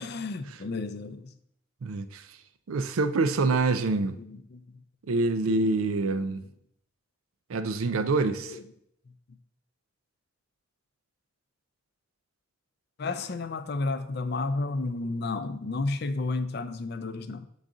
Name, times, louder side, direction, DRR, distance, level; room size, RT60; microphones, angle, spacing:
voice 1, 0.0-1.3 3.3-4.6 5.5-6.4 7.9-8.1 8.5-8.6 13.0-17.5, left 3 dB, 50° left, 0.4 m, -33 dB
voice 2, 1.8-2.3 2.7-4.2 5.1-6.4 7.5-8.6, right 3 dB, 90° right, 0.5 m, -26 dB
7.3 x 3.9 x 3.7 m
head